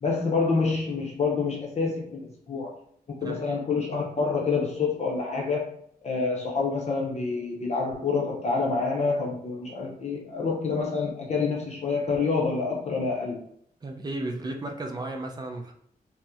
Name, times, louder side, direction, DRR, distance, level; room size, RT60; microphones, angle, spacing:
voice 1, 0.0-2.7 3.1-5.7 6.0-13.4, left 4 dB, 45° left, -2 dB, 0.6 m, -27 dB
voice 2, 3.2-3.6 13.8-15.7, right 2 dB, 25° right, 2 dB, 0.4 m, -34 dB
2.8 x 2.0 x 3.5 m, 0.67 s
wide cardioid pair, 170°, 16 cm